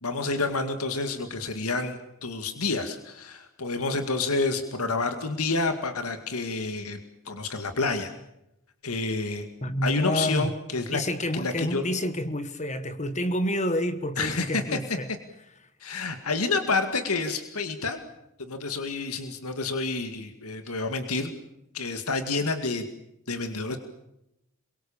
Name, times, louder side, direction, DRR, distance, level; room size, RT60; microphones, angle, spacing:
voice 1, 0.0-7.0 7.3-8.1 8.8-9.5 9.8-11.0 11.3-11.9 14.2-14.8 15.8-18.0 18.4-21.3 21.7-22.8 23.3-23.8, left 3 dB, 85° left, 2.2 m, -29 dB
voice 2, 9.6-10.5 10.9-15.1, equal, 30° left, 1.4 m, -28 dB
28.0 x 23.0 x 7.2 m
head